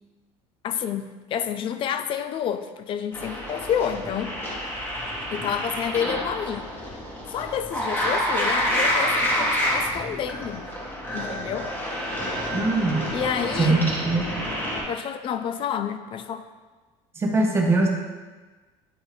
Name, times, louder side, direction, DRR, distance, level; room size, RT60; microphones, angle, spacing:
voice 1, 0.6-4.4 5.3-6.7 7.3-10.7 11.1-11.7 13.1-13.8 14.9-16.5, left 8 dB, 40° left, 10 dB, 0.4 m, -29 dB
sound 1, 3.1-14.8, equal, 15° left, 1.2 m, -28 dB
voice 2, 12.5-13.2 13.6-14.3 17.2-17.9, right 3 dB, 20° right, 0 dB, 0.9 m, -22 dB
7.8 x 2.6 x 4.8 m, 1.3 s
cardioid pair, 135°, 13 cm